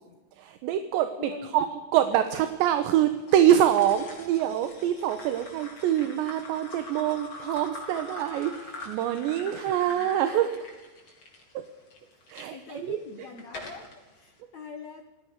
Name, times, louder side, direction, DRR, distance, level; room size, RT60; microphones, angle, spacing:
voice 1, 0.3-10.5 11.5-11.7 12.3-13.0, right 11 dB, 75° right, 9 dB, 3.3 m, -25 dB
voice 2, 1.2-1.6 9.4-9.5 9.9-10.1 12.5-15.0, left 6 dB, 70° left, 6 dB, 1.7 m, -43 dB
sound 1, 3.3-12.5 13.0-14.0, left 2 dB, 30° left, 4.5 m, -43 dB
28.0 x 17.5 x 6.8 m, 1.2 s
omnidirectional pair, 5.2 m